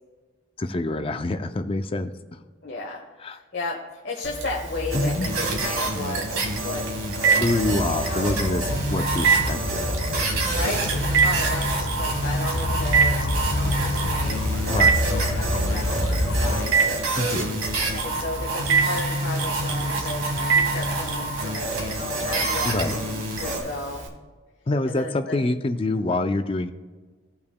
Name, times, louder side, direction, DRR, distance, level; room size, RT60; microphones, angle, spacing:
voice 1, 0.6-2.1 3.2-3.4 4.9-5.3 7.4-8.6 8.9-9.8 14.7-15.0 17.2-17.6 22.6-23.0 24.7-26.7, left 2 dB, 25° left, 8 dB, 0.4 m, -26 dB
voice 2, 2.6-6.3 6.5-6.9 7.3-8.3 10.5-16.8 17.9-24.1 24.8-25.4, left 2 dB, 55° left, -2 dB, 1.1 m, -34 dB
Telephone, 4.2-24.1, right 5 dB, 65° right, 1.2 m, -28 dB
sound 1, 4.9-23.6, right 2 dB, 90° right, 1.7 m, -27 dB
sound 2, 7.6-16.6, left 1 dB, 90° left, 1.0 m, -28 dB
16.0 x 5.7 x 2.2 m, 1.4 s
head